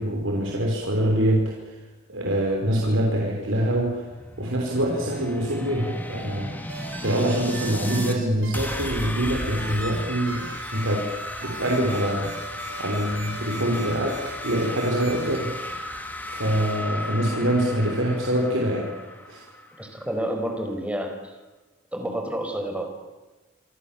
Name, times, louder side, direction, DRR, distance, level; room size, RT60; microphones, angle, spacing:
voice 1, 0.0-1.8 2.1-4.1 4.4-6.7 7.0-11.1 11.4-12.4 12.8-18.9 19.3-19.4, right 1 dB, 90° right, -1 dB, 5.1 m, -25 dB
sound 1, 3.8-8.2 8.5-20.1, left 1 dB, 10° left, 3.0 m, -35 dB
sound 2, 6.7-8.2 8.4-10.0 10.3-15.4, right 4 dB, 65° right, 6.6 m, -41 dB
voice 2, 19.8-21.4 21.9-22.9, right 1 dB, 5° right, 4 dB, 5.2 m, -29 dB
27.5 x 26.5 x 7.4 m, 1.2 s
head